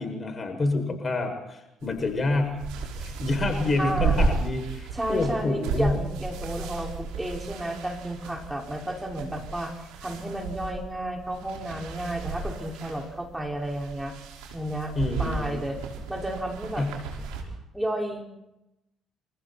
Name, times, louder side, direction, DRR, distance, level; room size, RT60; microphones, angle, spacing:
voice 1, 0.0-2.5 3.0-6.0 14.9-15.6 16.8-16.9, left 2 dB, 35° left, 6 dB, 7.2 m, -27 dB
sound 1, 1.8-17.4, right 4 dB, 70° right, 5.6 m, -34 dB
voice 2, 3.8-4.2 4.9-9.7 10.0-14.1 14.5-14.9 15.2-15.8 16.1-16.8 17.7-18.2, right 1 dB, 10° right, 0 dB, 6.0 m, -32 dB
29.0 x 28.5 x 4.6 m, 0.90 s
figure-of-eight pair, 50°, 0 cm